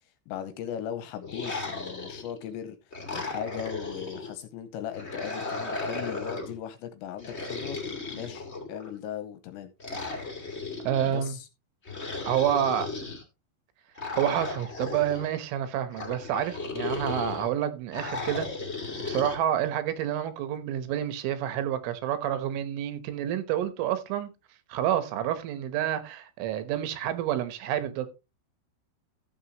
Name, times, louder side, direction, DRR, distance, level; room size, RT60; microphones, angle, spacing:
voice 1, 0.3-9.7 11.0-11.5 19.1-19.4, left 10 dB, 80° left, 2.8 m, -38 dB
sound 1, 1.2-2.4 2.9-4.3 4.9-6.6 7.2-8.9 9.8-11.1 11.8-13.2 14.0-15.3 15.9-17.5 17.9-19.4, left 3 dB, 30° left, 1.1 m, -35 dB
voice 2, 10.9-11.4 12.3-12.9 14.2-18.5 19.1-24.3 24.7-28.1, right 10 dB, 80° right, 3.6 m, -28 dB
14.5 x 7.4 x 3.0 m
omnidirectional pair, 5.7 m